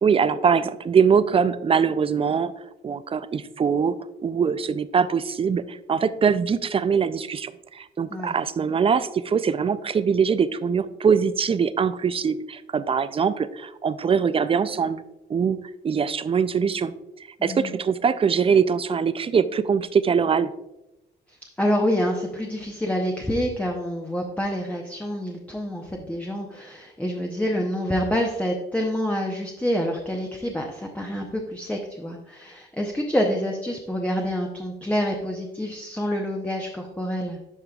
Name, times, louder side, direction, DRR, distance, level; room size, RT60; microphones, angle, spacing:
voice 1, 0.0-2.5 2.8-4.0 4.2-15.0 15.3-15.6 15.8-16.9 17.4-20.5, right 6 dB, 30° right, 14 dB, 0.4 m, -22 dB
voice 2, 17.4-17.7 21.3-37.4, equal, 5° left, 1 dB, 0.8 m, -27 dB
11.0 x 5.0 x 2.3 m, 0.94 s
cardioid pair, 90°, 20 cm